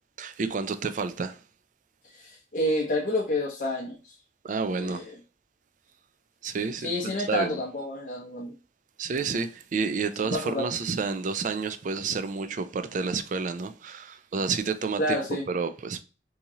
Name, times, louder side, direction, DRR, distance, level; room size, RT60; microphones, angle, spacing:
voice 1, 0.2-1.4 4.4-5.1 6.4-6.9 7.3-7.6 9.0-15.2 15.5-16.0, right 4 dB, 45° right, 0.4 m, -30 dB
voice 2, 2.0-4.0 4.7-5.2 6.8-8.6 10.3-10.7 15.0-15.4, left 1 dB, 45° left, 0.6 m, -29 dB
2.9 x 2.8 x 3.6 m
head